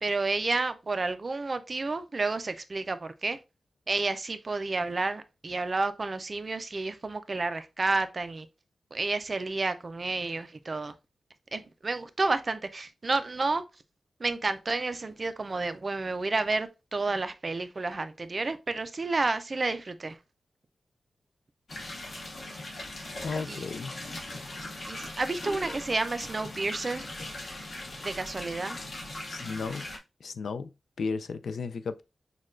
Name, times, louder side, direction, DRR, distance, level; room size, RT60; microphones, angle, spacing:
voice 1, 0.0-3.4 3.9-8.5 8.9-10.9 11.5-13.6 14.2-20.2 22.1-22.2 23.5-23.7 24.9-27.1 28.0-28.8, right 3 dB, 30° right, 0.3 m, -30 dB
sound 1, 21.7-30.0, left 1 dB, 45° left, 0.8 m, -40 dB
voice 2, 23.2-23.9 29.3-29.9 30.2-30.7 31.0-32.0, left 4 dB, 75° left, 0.3 m, -34 dB
6.2 x 2.2 x 2.4 m
wide cardioid pair, 175°, 0 cm